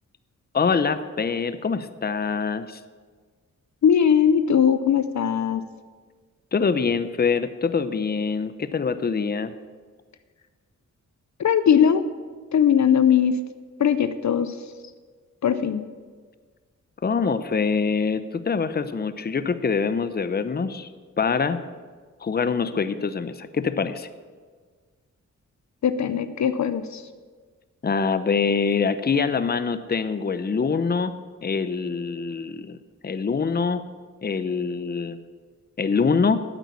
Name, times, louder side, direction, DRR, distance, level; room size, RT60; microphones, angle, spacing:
voice 1, 0.5-2.8 6.5-9.5 17.0-20.9 21.2-21.6 22.2-24.1 27.8-31.1 31.4-32.8 33.0-33.8 34.2-35.2 35.8-36.4, left 5 dB, 30° left, 12 dB, 0.7 m, -24 dB
voice 2, 3.8-5.6 11.4-12.0 12.5-13.4 13.8-14.6 15.4-15.8 25.8-27.0, left 8 dB, 65° left, 12 dB, 0.7 m, -20 dB
9.0 x 8.1 x 8.3 m, 1.5 s
cardioid pair, 65°, 31 cm